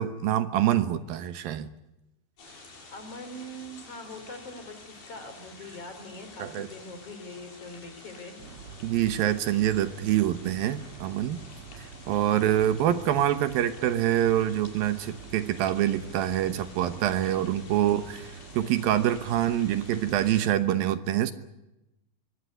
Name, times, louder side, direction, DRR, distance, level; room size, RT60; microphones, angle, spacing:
voice 1, 0.0-1.7 6.4-6.7 8.8-11.4 12.1-18.3 18.5-21.3, right 11 dB, 75° right, 11 dB, 2.8 m, -25 dB
sound 1, 2.4-20.4, left 3 dB, 85° left, 8.8 m, -50 dB
voice 2, 2.9-8.5 17.8-18.2, left 1 dB, 40° left, 8 dB, 4.3 m, -43 dB
sound 2, 8.4-20.5, right 6 dB, 55° right, 1.7 m, -46 dB
23.5 x 18.0 x 9.6 m, 0.94 s
omnidirectional pair, 4.3 m